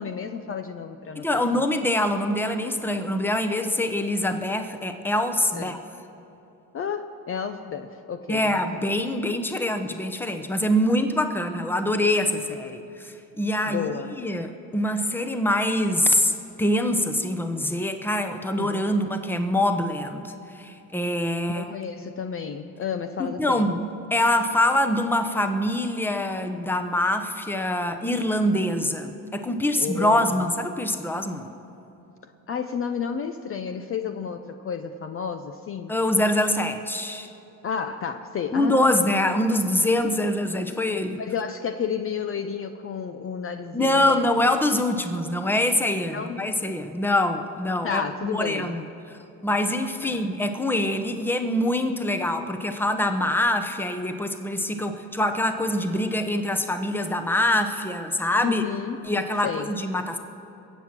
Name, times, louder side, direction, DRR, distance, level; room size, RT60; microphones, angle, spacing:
voice 1, 0.0-1.6 5.5-5.8 6.7-8.6 13.7-14.1 18.6-18.9 21.5-23.7 29.8-30.2 32.5-35.9 37.6-39.1 41.2-44.2 46.1-46.5 47.8-48.7 50.0-50.3 58.4-59.0 59.4-59.7, left 6 dB, 35° left, 8 dB, 0.7 m, -31 dB
voice 2, 1.2-5.8 8.3-13.9 14.2-16.3 16.6-21.7 23.2-23.8 24.1-31.5 35.9-37.3 38.5-41.2 43.7-48.8 49.1-58.6 59.1-60.2, left 1 dB, 5° left, 7 dB, 0.9 m, -24 dB
22.5 x 8.1 x 6.0 m, 3.0 s
cardioid pair, 110°, 36 cm